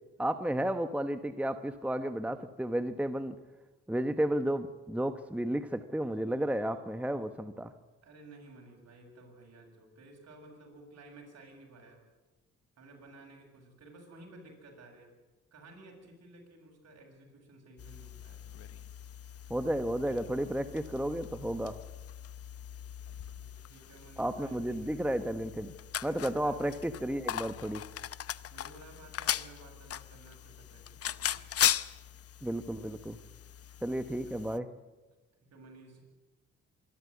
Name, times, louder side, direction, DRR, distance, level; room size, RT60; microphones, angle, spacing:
voice 1, 0.2-3.4 3.9-7.7 19.5-21.8 24.2-25.7 26.0-27.8 32.4-33.2 33.8-34.7, right 1 dB, 5° right, 9 dB, 1.0 m, -32 dB
voice 2, 8.0-12.0 12.8-15.1 15.5-18.4 23.4-25.0 26.4-26.6 28.5-31.4 34.2-34.5 35.5-36.0, right 2 dB, 55° right, 1 dB, 7.4 m, -54 dB
sound 1, 17.8-34.6, left 10 dB, 50° left, 0.7 m, -38 dB
25.0 x 12.5 x 9.4 m, 1.2 s
cardioid pair, 90°, 30 cm